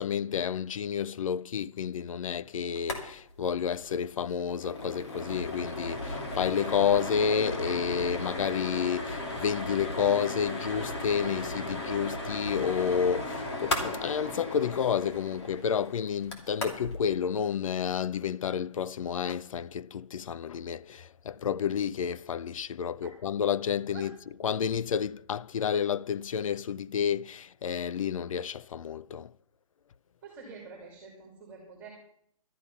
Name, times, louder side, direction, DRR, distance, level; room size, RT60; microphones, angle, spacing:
voice 1, 0.0-29.3, left 7 dB, 65° left, 0.4 m, -30 dB
sound 1, 2.8-3.0 3.3-3.4 3.7-3.9 4.3-17.0, left 1 dB, 45° left, 2.9 m, -35 dB
voice 2, 30.2-31.9, right 5 dB, 10° right, 2.8 m, -47 dB
13.0 x 11.5 x 5.4 m
hypercardioid pair, 170°, 18 cm